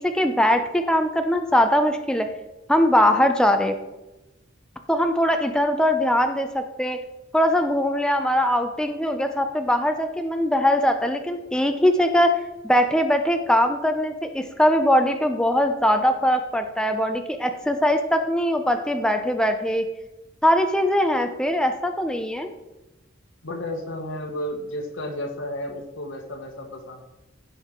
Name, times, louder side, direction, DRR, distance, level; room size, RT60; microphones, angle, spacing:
voice 1, 0.0-2.3 2.7-3.7 4.9-7.0 7.3-12.4 12.6-19.8 20.4-22.5, equal, 5° left, 6 dB, 0.7 m, -21 dB
voice 2, 23.4-27.0, left 1 dB, 75° left, 2 dB, 1.5 m, -32 dB
16.0 x 5.7 x 4.5 m, 1.0 s
head